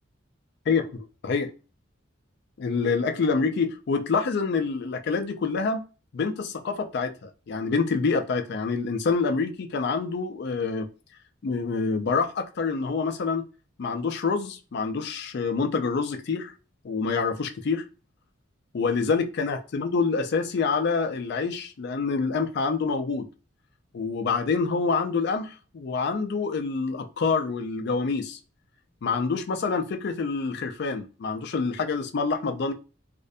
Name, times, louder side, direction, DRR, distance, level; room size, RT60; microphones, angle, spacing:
voice 1, 0.7-1.5 2.6-5.8 6.1-10.9 11.4-13.4 13.8-16.5 16.8-17.9 18.7-23.3 23.9-28.4 29.0-32.7, left 4 dB, 55° left, 0.4 m, -27 dB
2.5 x 2.1 x 2.5 m
head